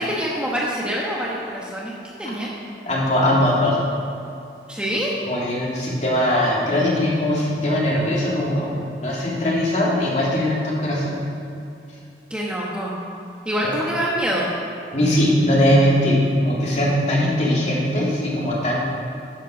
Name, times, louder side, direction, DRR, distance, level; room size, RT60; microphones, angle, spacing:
voice 1, 0.0-2.5 4.7-5.1 12.3-12.9 13.4-14.5, equal, 5° right, -5 dB, 1.1 m, -25 dB
voice 2, 2.8-3.8 5.3-11.2 14.9-18.8, left 1 dB, 40° left, -5 dB, 2.3 m, -20 dB
10.0 x 7.7 x 6.3 m, 2.6 s
head